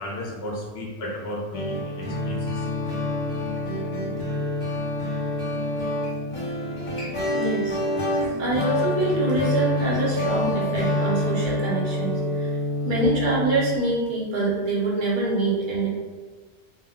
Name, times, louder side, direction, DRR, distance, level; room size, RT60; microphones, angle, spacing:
voice 1, 0.0-2.6, equal, 75° left, -2 dB, 0.9 m, -34 dB
sound 1, 1.5-13.7, left 1 dB, 40° left, 0.5 m, -27 dB
voice 2, 7.3-7.8 8.4-12.5 12.8-15.9, right 2 dB, 55° right, -5 dB, 0.7 m, -25 dB
2.2 x 2.1 x 3.5 m, 1.3 s
omnidirectional pair, 1.1 m